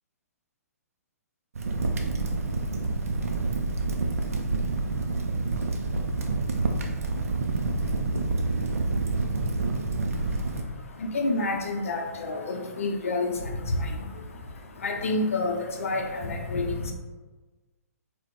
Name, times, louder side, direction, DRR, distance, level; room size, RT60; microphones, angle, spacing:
Crackle, 1.6-10.6, right 3 dB, 60° right, 0.4 m, -28 dB
voice 1, 10.1-16.9, left 2 dB, 55° left, 2 dB, 0.5 m, -29 dB
3.5 x 2.1 x 2.5 m, 1.2 s
figure-of-eight pair, 120°, 9 cm